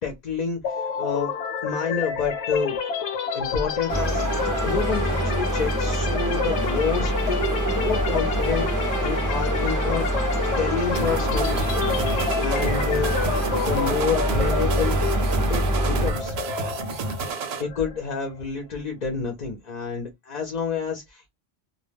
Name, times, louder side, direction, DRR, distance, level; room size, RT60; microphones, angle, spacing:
voice 1, 0.0-1.3 1.6-2.8 3.3-4.2 4.7-8.7 9.0-10.1 10.6-11.6 12.4-13.2 13.6-16.3 17.6-21.3, left 5 dB, 50° left, 0.6 m, -28 dB
sound 1, 0.6-18.4, left 6 dB, 85° left, 0.9 m, -30 dB
sound 2, 3.9-16.1, right 1 dB, 25° right, 0.4 m, -25 dB
sound 3, 11.0-17.6, right 4 dB, 75° right, 0.8 m, -31 dB
2.2 x 2.2 x 3.3 m
omnidirectional pair, 1.1 m